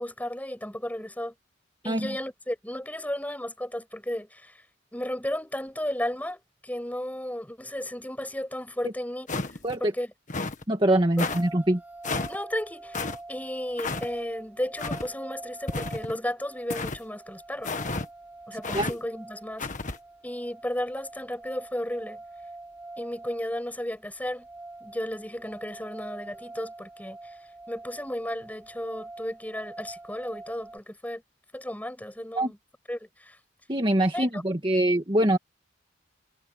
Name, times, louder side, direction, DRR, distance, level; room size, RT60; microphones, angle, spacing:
voice 1, 0.0-1.3 1.8-4.6 4.9-9.5 9.8-10.1 12.3-17.7 18.5-19.7 20.2-22.2 23.0-24.5 24.8-27.4 27.7-31.2 31.5-32.6 32.9-33.4 34.1-34.4, left 1 dB, 10° left, 7.6 m, -34 dB
sound 1, 9.3-9.8 10.3-10.6 11.2-11.4 12.0-12.4 12.9-13.2 13.8-14.1 14.8-15.1 15.7-16.2 16.7-17.0 17.6-18.1 18.6-18.9 19.6-20.0, left 3 dB, 40° left, 1.7 m, -31 dB
voice 2, 10.7-11.8 18.7-18.9 32.4-32.5 33.7-35.4, right 1 dB, 25° right, 1.8 m, -23 dB
sound 2, 11.1-30.8, right 2 dB, 10° right, 5.2 m, -45 dB
head